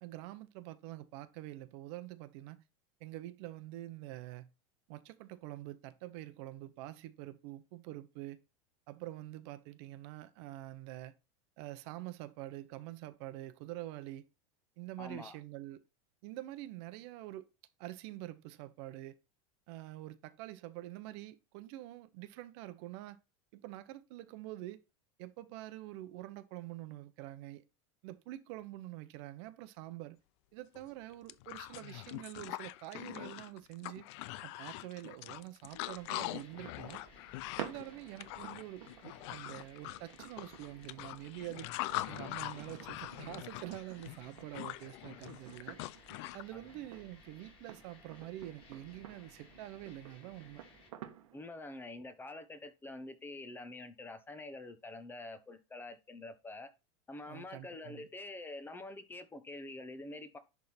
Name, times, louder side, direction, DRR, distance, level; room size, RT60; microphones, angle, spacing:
voice 1, 0.0-2.6 3.0-4.5 4.9-8.4 8.9-11.1 11.6-14.2 14.8-15.8 16.2-17.5 17.8-19.2 19.7-23.2 23.5-24.8 25.2-27.6 28.0-30.2 30.5-34.1 34.4-37.0 37.6-41.8 42.1-45.8 46.3-50.6 57.3-58.1, right 15 dB, 55° right, 0.9 m, -46 dB
voice 2, 15.0-15.4 46.5-46.6 51.3-56.7 57.1-60.4, left 2 dB, 10° left, 0.9 m, -46 dB
sound 1, 30.7-30.8 31.1-46.4, left 16 dB, 60° left, 0.5 m, -43 dB
sound 2, 35.6-50.9, left 5 dB, 30° left, 2.4 m, -60 dB
sound 3, 36.4-51.5, right 11 dB, 85° right, 1.3 m, -52 dB
10.5 x 3.7 x 4.4 m
supercardioid pair, 145°, 17 cm